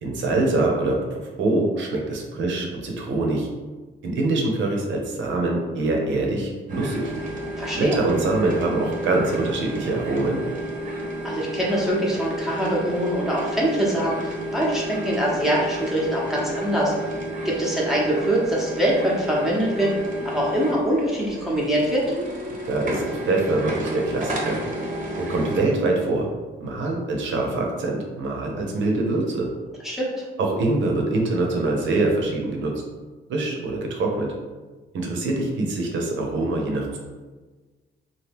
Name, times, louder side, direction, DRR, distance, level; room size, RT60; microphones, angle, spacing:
voice 1, 0.0-3.5 4.0-7.1 7.8-10.4 22.7-24.6 25.2-26.3 26.6-29.5 30.4-32.7 33.3-34.3 34.9-37.0, right 2 dB, 70° right, 1 dB, 0.7 m, -24 dB
sound 1, 6.7-25.7, right 1 dB, 40° right, 0.8 m, -31 dB
voice 2, 7.5-8.0 11.2-16.9 17.4-19.9 20.2-22.1 29.8-30.2, right 1 dB, ahead, -5 dB, 0.8 m, -23 dB
3.0 x 2.3 x 3.5 m, 1.3 s
cardioid pair, 90°, 20 cm